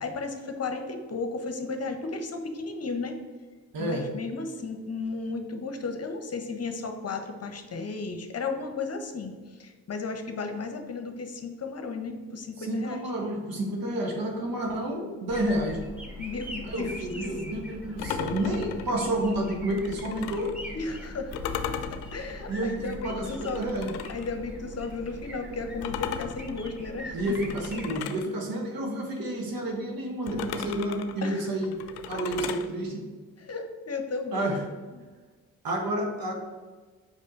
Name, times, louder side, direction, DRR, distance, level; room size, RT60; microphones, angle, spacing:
voice 1, 0.0-3.2 3.8-13.0 16.2-17.2 20.7-21.3 21.9-23.7 24.1-27.4 31.2-31.5 32.1-32.2 33.4-34.6 35.0-35.1, left 4 dB, 40° left, 6 dB, 0.9 m, -34 dB
voice 2, 3.7-4.1 12.7-15.8 16.6-20.5 22.5-23.9 27.1-31.7 32.0-33.1 34.3-34.6 35.6-36.3, right 1 dB, 60° right, 2 dB, 1.4 m, -30 dB
sound 1, 15.3-27.9, equal, 5° right, 1.9 m, -42 dB
sound 2, 18.0-20.6 21.3-24.3 25.8-28.3 30.3-32.7, left 8 dB, 70° left, 0.6 m, -37 dB
5.3 x 5.0 x 4.0 m, 1.4 s
hypercardioid pair, 45°, 39 cm